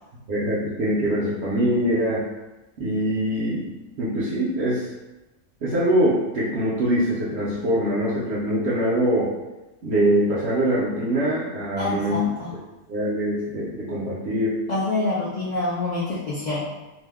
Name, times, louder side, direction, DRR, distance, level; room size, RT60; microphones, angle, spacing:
voice 1, 0.3-2.2 2.8-4.9 5.6-9.3 9.8-12.3 12.9-14.6, right 1 dB, 60° right, -9 dB, 0.8 m, -23 dB
voice 2, 11.8-12.5 14.7-16.6, left 2 dB, 70° left, -7 dB, 0.4 m, -26 dB
2.6 x 2.1 x 3.4 m, 1.1 s
omnidirectional pair, 1.4 m